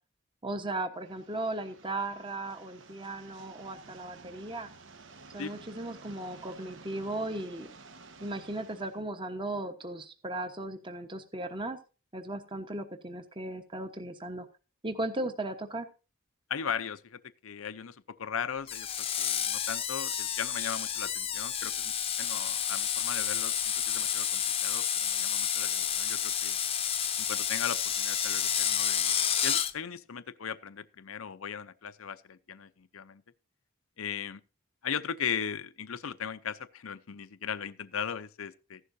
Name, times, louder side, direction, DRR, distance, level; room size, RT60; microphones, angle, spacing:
voice 1, 0.4-4.7 5.3-7.7 8.2-11.8 12.1-14.5 14.8-15.9, right 2 dB, 25° right, 1.2 m, -36 dB
sound 1, 0.9-9.0, right 3 dB, 65° right, 1.3 m, -52 dB
voice 2, 16.5-18.9 19.2-23.5 23.9-26.6 27.2-29.1 29.4-33.2 34.0-34.4 34.8-38.8, left 7 dB, 80° left, 0.7 m, -38 dB
Screech, 18.7-29.7, left 9 dB, 30° left, 0.8 m, -30 dB
15.0 x 11.5 x 2.7 m
head